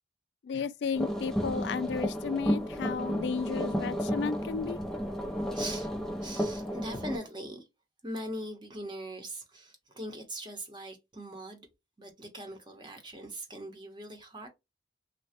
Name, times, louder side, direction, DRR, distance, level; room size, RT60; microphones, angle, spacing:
voice 1, 0.4-4.8, left 5 dB, 85° left, 0.3 m, -33 dB
sound 1, 0.9-7.2, equal, 5° left, 0.3 m, -32 dB
voice 2, 5.5-5.9 6.2-7.7 8.0-11.7 12.0-14.5, right 1 dB, 25° right, 0.8 m, -41 dB
3.2 x 2.2 x 2.7 m
head